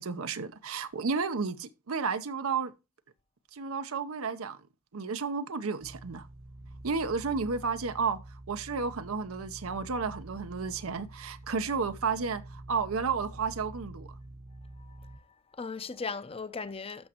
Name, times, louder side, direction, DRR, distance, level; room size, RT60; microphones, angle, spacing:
voice 1, 0.0-2.7 3.5-4.6 4.9-6.3 6.8-14.2, right 5 dB, 85° right, 0.7 m, -32 dB
sound 1, 5.8-15.2, right 1 dB, 60° right, 1.1 m, -47 dB
voice 2, 14.8-15.2 15.5-17.1, left 4 dB, 30° left, 0.6 m, -38 dB
12.5 x 6.1 x 2.9 m
head